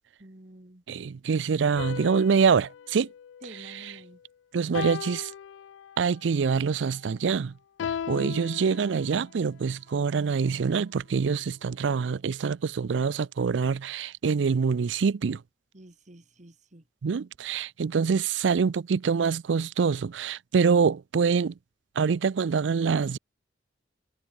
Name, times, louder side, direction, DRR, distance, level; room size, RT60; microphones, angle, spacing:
voice 1, 0.2-0.8 3.4-4.2 15.7-16.8, right 1 dB, 40° right, 2.0 m, -49 dB
voice 2, 0.9-3.1 3.5-3.9 4.5-5.3 6.0-7.5 8.1-15.4 17.0-21.5 22.0-23.2, right 5 dB, 75° right, 0.4 m, -25 dB
sound 1, 1.8-4.2 4.7-6.2 7.8-9.5, left 8 dB, 85° left, 0.3 m, -38 dB
head